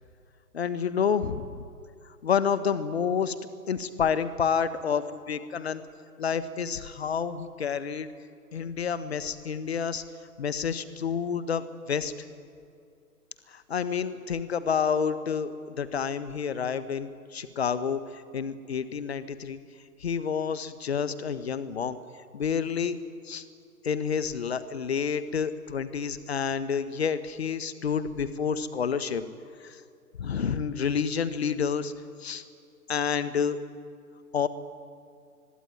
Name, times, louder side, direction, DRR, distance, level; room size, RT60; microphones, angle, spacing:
voice 1, 0.5-1.6 2.2-3.3 3.7-5.8 6.2-8.1 8.5-10.0 10.4-12.1 13.5-19.6 20.0-22.0 22.3-23.0 23.2-23.4 23.8-29.2 29.6-29.8 30.2-31.9 32.2-32.4 32.9-33.6 34.3-34.5, left 7 dB, 45° left, 13 dB, 1.4 m, -29 dB
25.0 x 21.5 x 9.4 m, 2.4 s
figure-of-eight pair, 135°, 46 cm